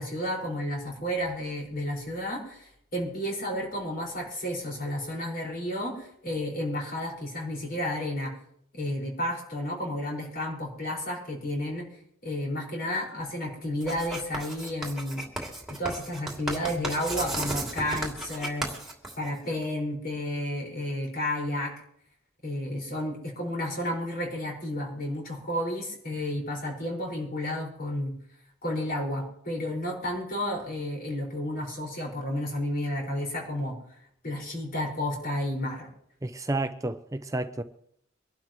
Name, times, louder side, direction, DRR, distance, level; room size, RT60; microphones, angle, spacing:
voice 1, 0.0-8.4 8.7-11.9 12.2-15.2 15.7-18.7 19.2-21.7 22.4-28.2 28.6-33.8 34.2-35.9, left 1 dB, 50° left, 5.4 m, -32 dB
Writing, 13.8-19.6, right 1 dB, ahead, 2.8 m, -35 dB
voice 2, 36.2-37.6, right 2 dB, 15° right, 0.5 m, -31 dB
25.0 x 12.0 x 3.1 m
head